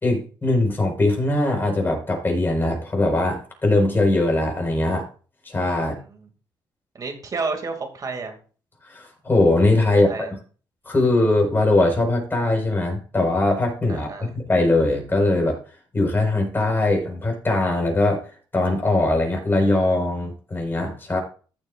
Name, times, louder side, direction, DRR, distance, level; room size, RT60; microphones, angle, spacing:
voice 1, 0.0-5.1 5.5-6.0 8.8-10.3 10.9-15.6 15.9-21.2, left 2 dB, 25° left, 2 dB, 5.1 m, -21 dB
voice 2, 5.8-6.2 6.9-8.4 9.9-10.3 13.9-14.3, right 4 dB, 45° right, 4 dB, 2.6 m, -31 dB
15.0 x 7.3 x 2.6 m, 0.38 s
cardioid pair, 100°, 8 cm